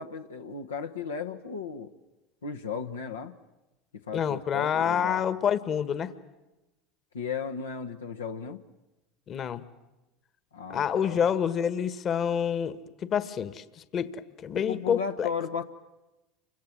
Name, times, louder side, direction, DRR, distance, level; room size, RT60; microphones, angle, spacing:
voice 1, 0.0-1.9 2.4-3.3 4.1-5.2 7.1-8.6 10.5-11.2 14.5-15.6, left 6 dB, 90° left, 4 dB, 1.2 m, -35 dB
voice 2, 4.1-6.1 9.3-9.6 10.7-15.3, left 8 dB, 40° left, 13 dB, 1.5 m, -28 dB
29.0 x 25.0 x 7.5 m, 1.0 s
hypercardioid pair, 80°, 0 cm